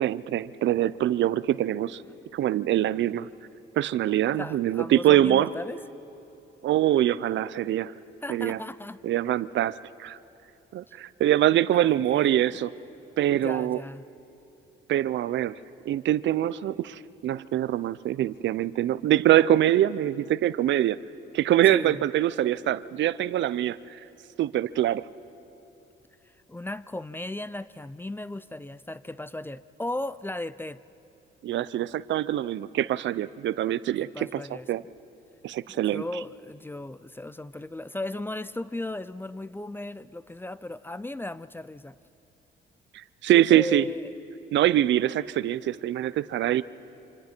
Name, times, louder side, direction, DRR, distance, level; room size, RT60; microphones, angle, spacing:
voice 1, 0.0-2.0 2.3-3.3 3.8-5.5 6.6-7.9 8.3-8.6 9.0-10.2 10.7-12.7 13.2-13.8 14.9-15.5 15.9-21.0 21.3-24.0 24.4-25.1 31.4-34.4 34.7-34.8 35.4-36.0 42.9-43.8 44.5-46.6, right 12 dB, 70° right, 17 dB, 0.5 m, -24 dB
voice 2, 4.4-5.8 8.2-9.0 11.7-12.6 13.3-14.1 21.7-22.0 26.2-30.8 34.0-34.7 35.9-42.0 43.5-44.1, left 2 dB, 10° left, 17 dB, 0.4 m, -36 dB
26.5 x 26.0 x 4.5 m, 3.0 s
cardioid pair, 90°, 20 cm